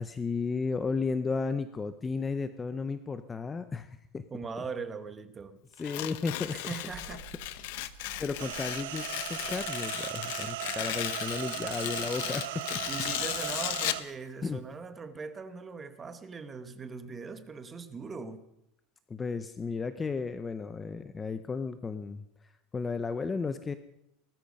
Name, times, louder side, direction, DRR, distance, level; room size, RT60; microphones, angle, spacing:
voice 1, 0.0-4.2 5.8-6.6 8.2-9.0 9.3-12.8 14.4-14.6 19.1-22.2 22.7-23.7, left 4 dB, 15° left, 0.6 m, -34 dB
voice 2, 4.3-5.6 6.5-7.2 12.9-18.4, right 5 dB, 15° right, 1.0 m, -40 dB
Tearing, 5.8-14.1, left 16 dB, 60° left, 0.9 m, -36 dB
sound 1, 6.9-13.0, right 4 dB, 65° right, 3.5 m, -54 dB
sound 2, 8.4-14.0, right 15 dB, 85° right, 0.7 m, -37 dB
19.5 x 13.5 x 5.3 m
supercardioid pair, 170°, 0 cm